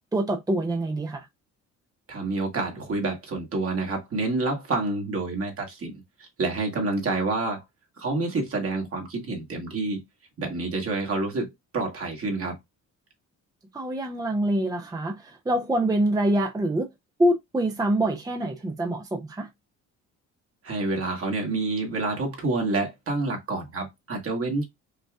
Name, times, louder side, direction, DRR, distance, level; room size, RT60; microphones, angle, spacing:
voice 1, 0.1-1.3 13.7-16.9 17.2-19.5, right 1 dB, 10° right, 0.6 m, -25 dB
voice 2, 2.1-7.6 8.0-10.0 10.4-12.6 20.6-24.6, right 3 dB, 50° right, 1.5 m, -28 dB
5.3 x 2.2 x 2.3 m
cardioid pair, 90°, 30 cm